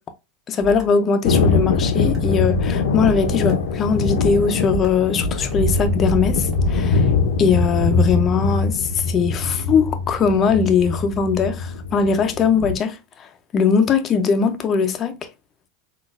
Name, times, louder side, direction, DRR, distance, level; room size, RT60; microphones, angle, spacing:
voice 1, 0.5-7.1 7.4-13.3 13.5-15.2, left 5 dB, 25° left, 0.4 m, -20 dB
sound 1, 0.6-3.8 4.2-6.8, right 4 dB, 25° right, 1.1 m, -30 dB
Thunder, 1.2-12.8, left 4 dB, 80° left, 0.5 m, -22 dB
3.9 x 2.3 x 2.4 m
supercardioid pair, 140°, 0 cm